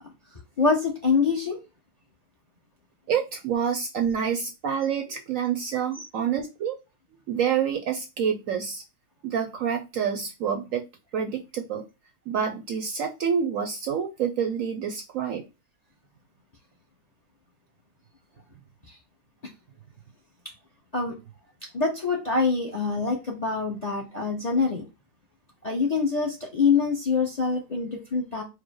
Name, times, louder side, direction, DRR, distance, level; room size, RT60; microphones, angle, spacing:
voice 1, 0.6-1.6 5.9-6.0 18.9-19.0 20.9-21.1 21.7-24.8 25.6-28.4, left 4 dB, 35° left, 0.7 m, -25 dB
voice 2, 3.1-6.8 7.3-8.8 9.2-10.9 11.1-11.8 12.3-15.5, right 7 dB, 70° right, 0.8 m, -27 dB
4.9 x 2.0 x 4.6 m
omnidirectional pair, 1.8 m